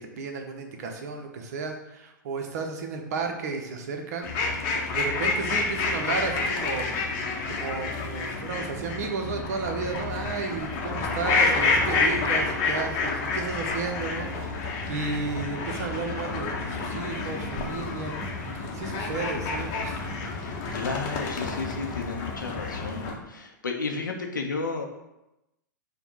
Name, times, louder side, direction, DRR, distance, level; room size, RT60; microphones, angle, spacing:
voice 1, 0.0-4.3 4.9-6.9 7.5-18.3 18.5-20.1, right 4 dB, 50° right, 4 dB, 0.7 m, -33 dB
sound 1, 4.2-23.1, left 3 dB, 35° left, 0.7 m, -29 dB
voice 2, 20.4-24.8, left 4 dB, 75° left, 3 dB, 0.5 m, -33 dB
5.1 x 2.2 x 4.5 m, 0.92 s
figure-of-eight pair, 100°, 11 cm